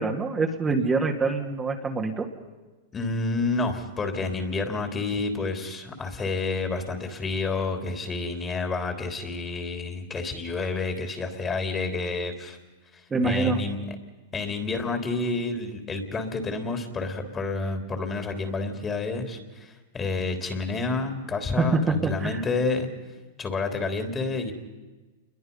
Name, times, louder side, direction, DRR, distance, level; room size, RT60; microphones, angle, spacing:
voice 1, 0.0-2.3 13.1-13.6 21.6-22.4, right 3 dB, 15° right, 1 dB, 2.2 m, -25 dB
voice 2, 2.9-12.6 12.9-13.8 14.3-22.9 23.4-24.5, left 3 dB, 20° left, 5 dB, 3.4 m, -29 dB
28.5 x 22.0 x 5.5 m, 1.2 s
hypercardioid pair, 120°, 0 cm